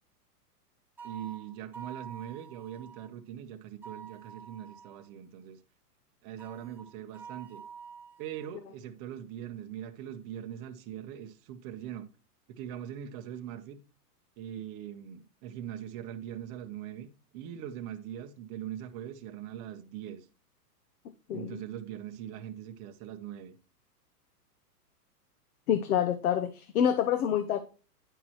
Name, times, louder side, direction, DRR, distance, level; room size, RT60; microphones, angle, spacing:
sound 1, 1.0-3.1 3.8-5.1 6.4-8.6, right 7 dB, 5° right, 0.9 m, -48 dB
voice 1, 1.0-5.6 6.2-7.6 8.2-12.1 12.5-13.8 14.4-20.3 21.3-23.5, right 10 dB, 25° right, 0.7 m, -41 dB
voice 2, 21.3-21.6 25.7-27.6, left 9 dB, 65° left, 0.9 m, -27 dB
10.0 x 6.0 x 3.0 m
hypercardioid pair, 140°, 48 cm